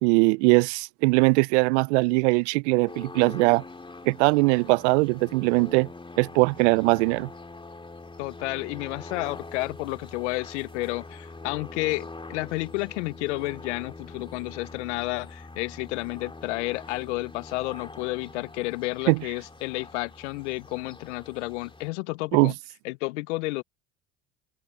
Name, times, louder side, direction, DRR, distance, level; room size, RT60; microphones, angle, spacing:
voice 1, 0.0-3.6 4.0-5.9 6.2-7.3 19.1-19.2 22.3-22.5, right 28 dB, 75° right, 0.5 m, -21 dB
sound 1, 2.9-21.9, left 3 dB, 15° left, 2.4 m, -44 dB
voice 2, 8.2-22.5 22.8-23.6, left 22 dB, 85° left, 0.6 m, -31 dB
hypercardioid pair, 65°, 34 cm